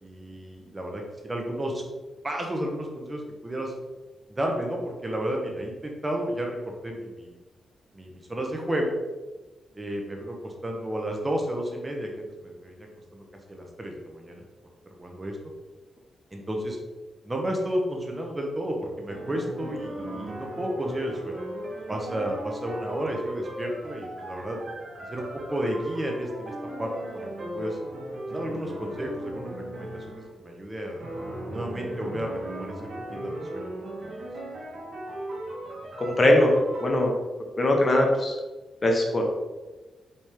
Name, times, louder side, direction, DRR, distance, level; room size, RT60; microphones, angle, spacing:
voice 1, 0.0-1.8 2.2-3.7 4.3-7.4 7.9-8.9 9.7-12.9 13.1-14.4 15.0-15.4 16.3-16.8 17.2-21.3 21.9-24.6 25.1-26.5 26.8-27.8 28.3-31.0 31.5-33.7 34.0-34.1, right 1 dB, 25° right, 1 dB, 1.3 m, -32 dB
sound 1, 19.1-30.3 31.0-36.9, right 1 dB, 60° right, 1.7 m, -37 dB
voice 2, 36.0-37.1 37.6-38.3 38.8-39.3, left 1 dB, 35° left, 1 dB, 1.3 m, -21 dB
5.1 x 5.0 x 3.7 m, 1.2 s
cardioid pair, 65°, 0 cm